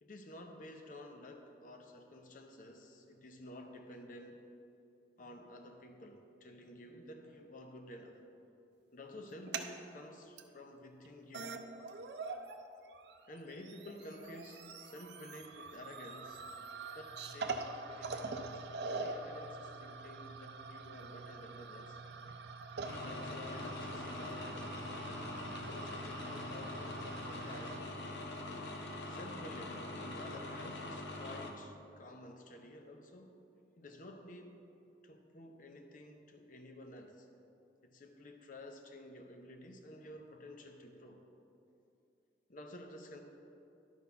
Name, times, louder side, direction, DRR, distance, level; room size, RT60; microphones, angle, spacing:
voice 1, 0.0-4.4 5.2-8.2 8.9-11.6 13.3-16.4 16.9-18.6 18.9-22.0 22.9-24.7 25.5-27.7 29.1-33.3 33.8-34.6 35.0-37.3 37.8-41.2 42.5-43.2, left 1 dB, 50° left, 4 dB, 0.7 m, -51 dB
sound 1, 9.3-9.7 10.4-10.5 11.0-11.1 11.3-12.6 12.9-27.8, right 3 dB, 70° right, 0.5 m, -45 dB
sound 2, 22.8-31.5, left 2 dB, 75° left, 0.9 m, -43 dB
11.0 x 4.2 x 5.6 m, 2.7 s
head